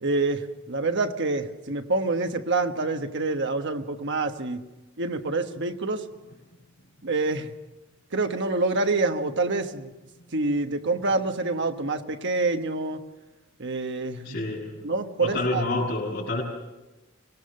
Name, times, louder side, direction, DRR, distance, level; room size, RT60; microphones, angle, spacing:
voice 1, 0.0-4.6 5.0-6.1 7.0-7.5 8.1-9.9 10.3-13.0 13.6-14.4 14.8-15.6, right 3 dB, 60° right, 6 dB, 1.4 m, -27 dB
voice 2, 14.2-14.9 15.2-16.4, left 2 dB, 55° left, -7 dB, 6.3 m, -28 dB
25.0 x 19.0 x 6.6 m, 1.1 s
head